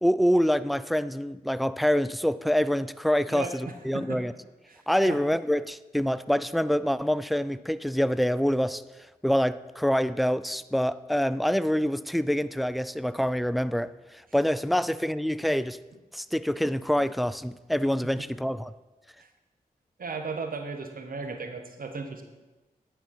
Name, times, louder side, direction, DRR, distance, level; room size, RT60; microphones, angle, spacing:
voice 1, 0.0-4.3 4.9-8.8 9.2-15.8 16.1-18.7, equal, ahead, 16 dB, 0.3 m, -26 dB
voice 2, 3.3-4.2 4.7-5.2 20.0-22.2, right 4 dB, 65° right, 5 dB, 1.1 m, -36 dB
10.0 x 4.5 x 5.7 m, 1.1 s
cardioid pair, 45°, 16 cm